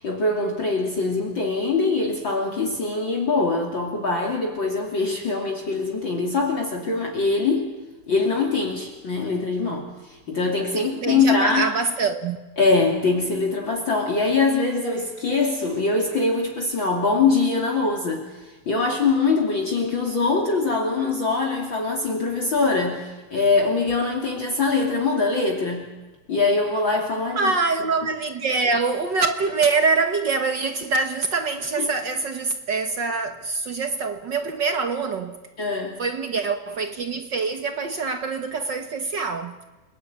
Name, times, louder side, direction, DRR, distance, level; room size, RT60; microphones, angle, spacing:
voice 1, 0.0-7.7 8.1-11.7 12.6-26.0 26.3-27.5 31.8-31.9 35.6-36.0, left 3 dB, 40° left, 3.4 m, -23 dB
voice 2, 10.7-12.4 27.4-35.4 36.0-39.6, right 4 dB, 50° right, 1.6 m, -24 dB
30.0 x 20.0 x 9.4 m
omnidirectional pair, 3.4 m